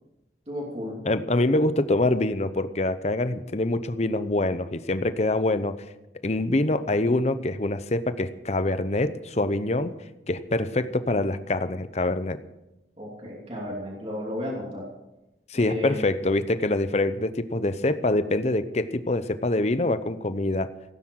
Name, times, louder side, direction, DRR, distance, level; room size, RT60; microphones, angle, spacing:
voice 1, 0.5-1.0 13.0-14.9 15.6-16.1, left 1 dB, 35° right, -3 dB, 2.9 m, -33 dB
voice 2, 1.0-5.8 6.2-10.0 10.3-12.4 15.5-20.7, left 2 dB, 40° left, 12 dB, 0.8 m, -25 dB
17.0 x 9.8 x 6.4 m, 0.96 s
head